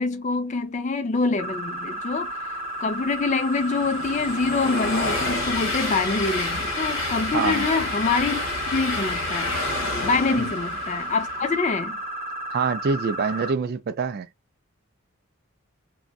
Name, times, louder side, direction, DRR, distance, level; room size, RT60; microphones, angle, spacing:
voice 1, 0.0-8.4 8.7-9.5 10.0-12.0, left 4 dB, 35° left, 0.4 m, -25 dB
sound 1, 1.4-13.5, right 1 dB, 25° right, 0.9 m, -33 dB
Train, 2.3-11.8, left 2 dB, 60° left, 1.2 m, -30 dB
voice 2, 7.3-7.7 10.3-10.5 12.5-14.3, right 5 dB, 45° right, 0.3 m, -25 dB
2.5 x 2.2 x 2.3 m
head